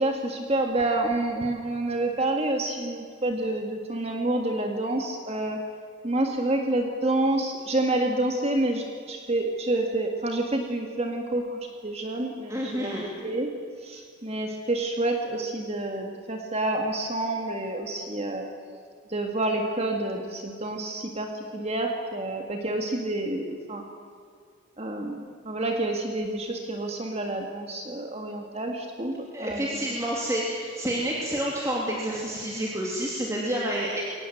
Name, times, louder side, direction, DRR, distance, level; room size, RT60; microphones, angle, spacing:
voice 1, 0.0-5.6 6.0-13.5 13.8-18.5 19.1-23.8 24.8-29.8, right 2 dB, 30° right, 3 dB, 1.7 m, -28 dB
voice 2, 12.5-13.1 29.3-34.0, right 1 dB, 15° right, -3 dB, 2.8 m, -29 dB
23.0 x 18.5 x 7.8 m, 2.1 s
head